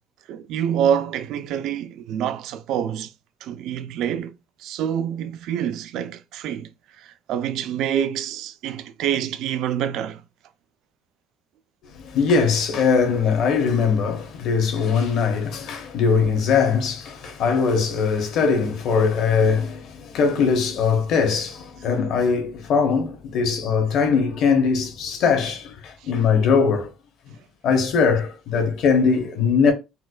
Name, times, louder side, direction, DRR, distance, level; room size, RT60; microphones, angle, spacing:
voice 1, 0.3-3.1 3.4-4.3 4.6-6.7 7.0-10.2 26.0-26.1, right 9 dB, 65° right, 0.3 m, -26 dB
voice 2, 12.0-26.9 27.6-29.7, left 5 dB, 60° left, 0.9 m, -21 dB
4.3 x 2.1 x 2.4 m
cardioid pair, 150°, 0 cm